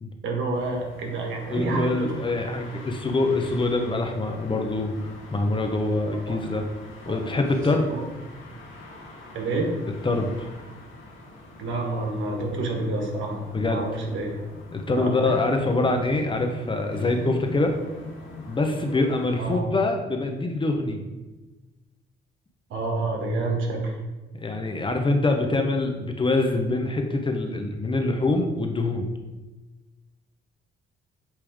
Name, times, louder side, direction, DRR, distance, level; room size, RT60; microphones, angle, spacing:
voice 1, 0.2-2.1 6.3-6.4 7.8-8.0 9.3-9.7 11.6-14.3 14.9-15.4 19.4-19.7 22.7-24.0, right 2 dB, 75° right, 1 dB, 1.5 m, -28 dB
sound 1, 0.5-19.5, left 2 dB, 80° left, 1.5 m, -43 dB
voice 2, 1.5-6.6 7.1-7.8 10.0-10.5 13.5-13.8 14.7-17.7 18.4-21.0 24.4-29.1, left 2 dB, 25° left, 4 dB, 0.8 m, -25 dB
8.6 x 3.3 x 3.6 m, 1.2 s
cardioid pair, 90°, 20 cm